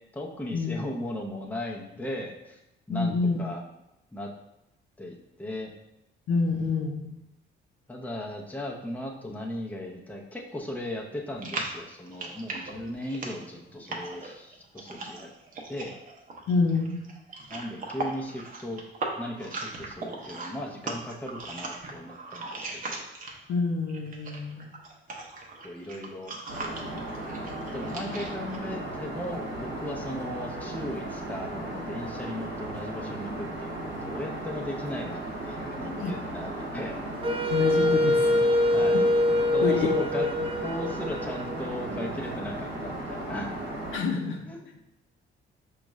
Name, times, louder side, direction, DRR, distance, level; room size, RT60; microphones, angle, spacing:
voice 1, 0.1-2.6 2.9-3.6 4.1-4.3 5.0-5.7 7.9-15.3 15.7-15.9 17.5-18.8 19.2-23.1 25.6-26.3 27.7-37.0 38.7-39.0 39.5-40.3 40.6-43.5 44.4-44.6, left 1 dB, 10° left, -1 dB, 0.7 m, -37 dB
voice 2, 2.9-3.4 6.3-7.1 15.0-15.1 16.5-17.0 23.5-24.7 35.9-36.1 37.5-38.4 39.6-39.9 43.9-44.5, left 4 dB, 75° left, 2 dB, 0.7 m, -27 dB
sound 1, 11.4-23.6 23.9-28.6, right 3 dB, 45° right, 0.8 m, -38 dB
Aircraft, 26.5-44.0, right 1 dB, 75° right, 1.0 m, -36 dB
Wind instrument woodwind instrument, 37.2-42.2, left 1 dB, 30° right, 0.4 m, -25 dB
5.1 x 2.4 x 3.1 m, 0.88 s
cardioid pair, 90°, 20 cm